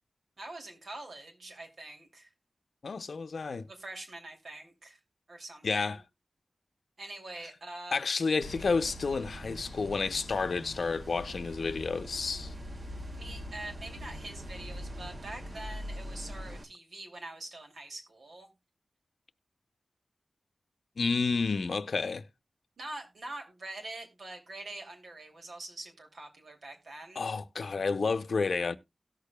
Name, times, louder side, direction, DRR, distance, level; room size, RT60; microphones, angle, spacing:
voice 1, 0.4-2.3 3.7-5.0 5.3-6.0 7.0-8.0 13.2-18.5 22.8-27.3, right 2 dB, 80° right, 2.7 m, -44 dB
voice 2, 2.8-3.7 5.6-6.0 7.9-12.5 21.0-22.2 27.2-28.8, left 4 dB, 85° left, 0.6 m, -30 dB
sound 1, 8.4-16.6, equal, 55° right, 1.6 m, -42 dB
17.5 x 6.7 x 2.3 m
wide cardioid pair, 100°, 0 cm